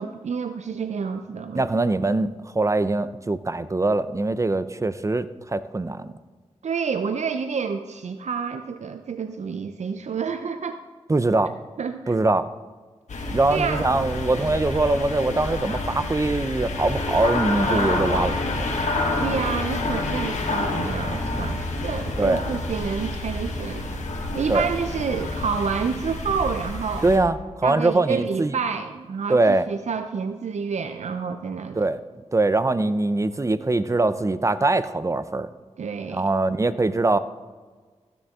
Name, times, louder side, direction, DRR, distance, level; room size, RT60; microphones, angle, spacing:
voice 1, 0.0-1.6 6.6-10.8 11.8-12.2 13.5-13.9 17.6-18.1 19.2-23.9 24.3-27.0 27.6-31.9 35.8-36.3, right 6 dB, 75° right, 8 dB, 0.5 m, -29 dB
voice 2, 1.5-6.1 11.1-11.5 12.1-12.5 13.3-18.4 22.2-22.4 24.5-24.7 27.0-28.6 29.3-29.6 31.7-32.0 32.3-35.5 36.1-37.2, right 2 dB, 25° right, 14 dB, 0.6 m, -22 dB
sound 1, 13.1-27.2, left 2 dB, 85° left, 1.6 m, -28 dB
14.5 x 9.9 x 3.6 m, 1.4 s
cardioid pair, 50°, 12 cm